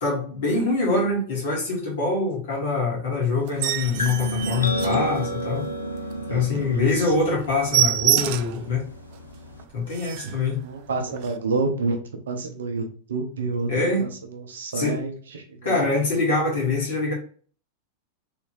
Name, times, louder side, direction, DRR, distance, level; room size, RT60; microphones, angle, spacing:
voice 1, 0.0-5.7 6.3-8.8 9.7-10.6 13.7-14.1 14.7-15.0 15.6-17.1, left 3 dB, 55° left, -3 dB, 1.8 m, -24 dB
sound 1, 3.4-5.6 6.0-6.2 6.5-6.6 6.9-7.1 7.3-8.7 9.1-9.2 9.6-9.7 9.9-10.4 11.2-11.3, right 13 dB, 45° right, 0.3 m, -26 dB
sound 2, 4.0-9.6, equal, 75° left, 0.4 m, -31 dB
voice 2, 6.3-7.2 10.2-12.0 12.3-13.7 14.0-15.9, right 3 dB, 65° right, 4 dB, 0.8 m, -29 dB
3.3 x 3.2 x 3.3 m, 0.43 s
figure-of-eight pair, 90°, 0 cm